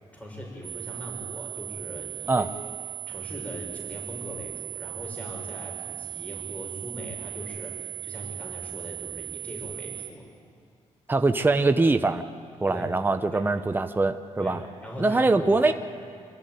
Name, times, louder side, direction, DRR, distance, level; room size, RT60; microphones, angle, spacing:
voice 1, 0.1-2.5 3.1-10.3 12.7-12.9 13.3-13.4 14.4-15.7, left 1 dB, 10° left, -2 dB, 5.9 m, -40 dB
sound 1, 0.6-10.1, right 16 dB, 75° right, 1.6 m, -38 dB
voice 2, 11.1-12.2 12.6-14.6 15.0-15.7, right 3 dB, 15° right, 7 dB, 0.9 m, -23 dB
26.0 x 14.0 x 9.4 m, 2.2 s
cardioid pair, 90°, 12 cm